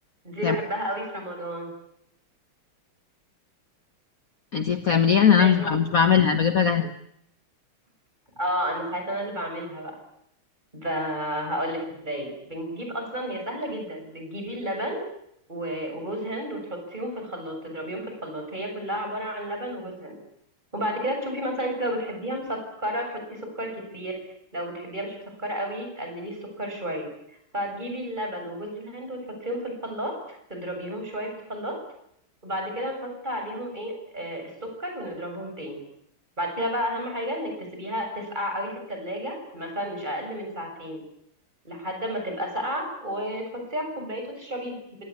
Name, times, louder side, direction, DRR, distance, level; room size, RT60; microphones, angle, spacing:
voice 1, 0.2-1.7 5.4-5.7 8.4-9.9 10.7-15.0 15.5-20.1 20.7-24.2 24.5-27.1 27.5-30.1 30.5-31.8 32.4-35.8 36.4-41.0 41.6-43.4 43.7-44.8, equal, 20° right, 3 dB, 7.7 m, -32 dB
voice 2, 4.5-6.9, left 7 dB, 45° left, 8 dB, 1.5 m, -20 dB
26.5 x 18.5 x 9.8 m, 0.75 s
omnidirectional pair, 2.3 m